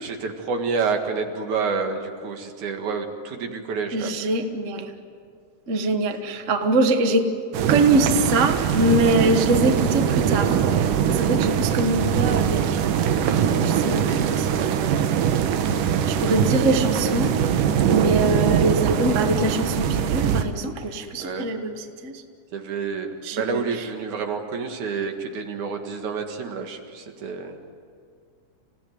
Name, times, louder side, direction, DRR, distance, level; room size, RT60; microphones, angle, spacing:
voice 1, 0.0-4.2 21.2-21.5 22.5-27.6, right 5 dB, 70° right, 4 dB, 3.2 m, -28 dB
voice 2, 3.9-4.9 5.7-7.3 7.7-15.0 16.1-17.4 17.9-22.2 23.2-23.9, right 2 dB, 45° right, 6 dB, 0.9 m, -24 dB
sound 1, 7.5-20.4, right 8 dB, 90° right, 2.7 m, -22 dB
28.0 x 16.5 x 9.5 m, 2.2 s
omnidirectional pair, 3.6 m